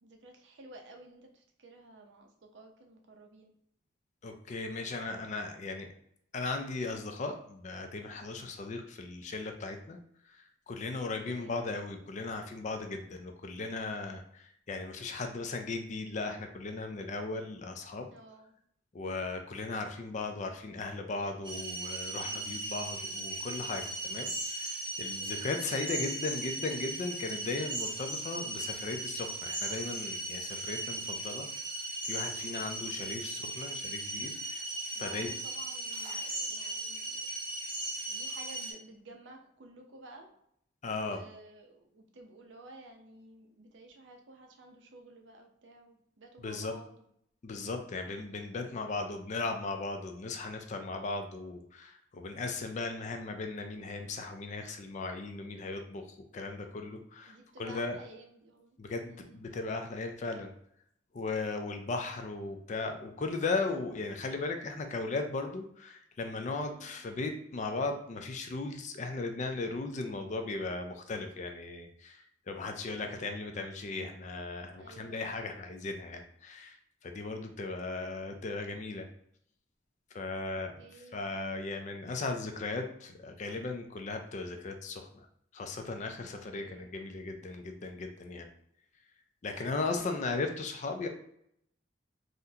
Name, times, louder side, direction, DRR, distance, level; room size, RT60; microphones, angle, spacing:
voice 1, 0.0-3.5 11.2-11.6 18.1-18.6 22.2-22.7 25.2-25.5 33.2-34.0 34.9-37.3 38.1-40.3 41.0-47.0 48.1-48.5 57.3-58.8 59.0-59.4 66.6-67.0 72.6-73.2 74.8-75.4 80.8-81.3 86.5-86.9 89.9-90.4, right 2 dB, 75° right, 3 dB, 0.6 m, -54 dB
voice 2, 4.2-5.9 6.3-10.0 10.2-18.1 18.9-31.5 32.0-34.7 35.0-35.3 40.8-41.2 46.4-46.7 47.4-58.0 58.8-60.5 61.1-79.1 80.1-80.8 81.1-85.3 85.5-88.5 89.4-91.1, left 3 dB, 40° left, 5 dB, 0.4 m, -37 dB
sound 1, 21.4-38.7, right 2 dB, 25° right, 0.8 m, -37 dB
3.7 x 2.1 x 2.7 m, 0.71 s
head